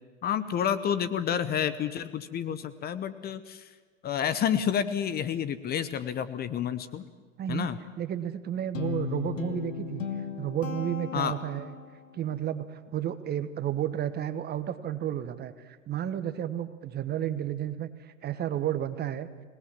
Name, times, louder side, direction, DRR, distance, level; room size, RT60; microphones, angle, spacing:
voice 1, 0.2-3.7 4.0-7.0 7.5-7.8 11.1-11.3, left 9 dB, 25° left, 13 dB, 0.9 m, -29 dB
voice 2, 7.4-10.0 10.4-11.7 12.1-19.3, right 11 dB, 25° right, 12 dB, 1.1 m, -32 dB
Guitar, 8.7-12.0, left 7 dB, 80° left, 2.6 m, -36 dB
26.0 x 18.5 x 7.5 m, 1.5 s
hypercardioid pair, 105°, 38 cm